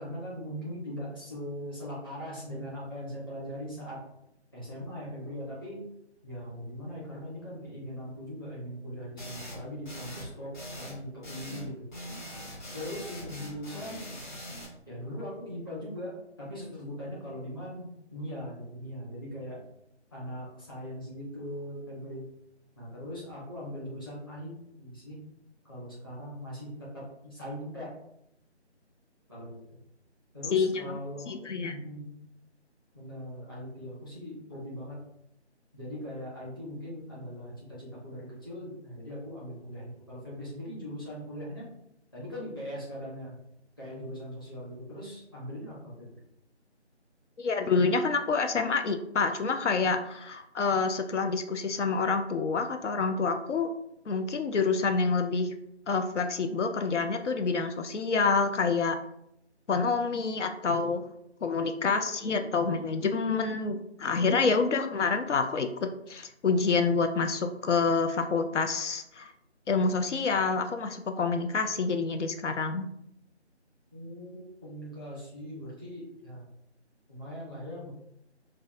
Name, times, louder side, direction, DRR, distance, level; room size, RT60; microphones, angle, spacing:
voice 1, 0.0-4.0 4.5-5.9 6.2-11.7 12.7-14.1 14.9-19.6 20.1-22.2 22.8-25.2 25.6-27.9 29.3-29.6 30.3-31.3 31.7-32.1 32.9-35.0 35.7-41.6 42.1-43.4 43.8-46.1 73.9-76.4 77.1-77.9, equal, 20° left, -8 dB, 0.8 m, -40 dB
sound 1, 9.2-9.6 9.8-10.3 10.5-11.0 11.2-11.7 11.9-14.6, equal, 40° left, 1.4 m, -42 dB
voice 2, 30.5-31.0 31.3-31.7 47.4-53.7 54.1-55.6 55.9-59.0 59.7-61.0 61.4-69.3 69.7-72.9, left 4 dB, 90° left, 7 dB, 0.5 m, -27 dB
4.9 x 2.2 x 2.5 m, 0.78 s
figure-of-eight pair, 160°, 35 cm